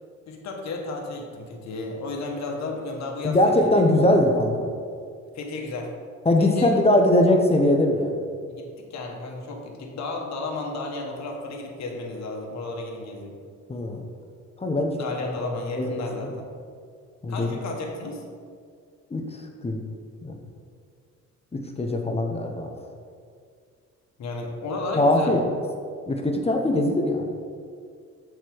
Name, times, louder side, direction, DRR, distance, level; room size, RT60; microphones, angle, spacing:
voice 1, 0.3-3.9 5.3-5.9 6.4-6.7 8.5-13.4 15.0-16.5 17.3-18.2 24.2-25.3, left 2 dB, 65° left, 1 dB, 1.2 m, -33 dB
voice 2, 3.2-4.7 6.2-8.2 13.7-14.0 14.6-15.0 15.8-16.3 17.2-17.5 19.1-19.2 19.6-19.8 20.2-20.4 21.5-22.7 25.0-25.4 26.1-27.3, left 1 dB, 20° left, 3 dB, 0.8 m, -21 dB
6.6 x 4.7 x 4.6 m, 2.2 s
cardioid pair, 90°, 30 cm